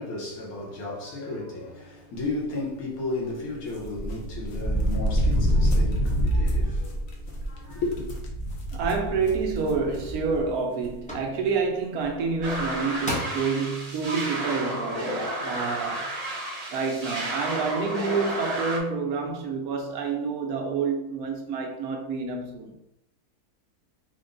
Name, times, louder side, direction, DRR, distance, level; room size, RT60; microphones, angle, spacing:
voice 1, 0.0-8.1, left 2 dB, 70° left, 1.4 m, -34 dB
sound 1, 3.7-10.5 10.8-10.9 12.0-12.1 12.4-12.6, equal, 55° left, 0.9 m, -26 dB
voice 2, 8.7-16.1 16.7-22.7, right 5 dB, 75° right, 1.1 m, -28 dB
sound 2, 11.1-11.3 12.5-12.6 13.0-13.5 14.1-14.2, left 1 dB, 5° left, 0.6 m, -32 dB
sound 3, 12.4-18.8, right 1 dB, 40° right, 0.6 m, -32 dB
3.8 x 2.2 x 3.7 m
omnidirectional pair, 1.6 m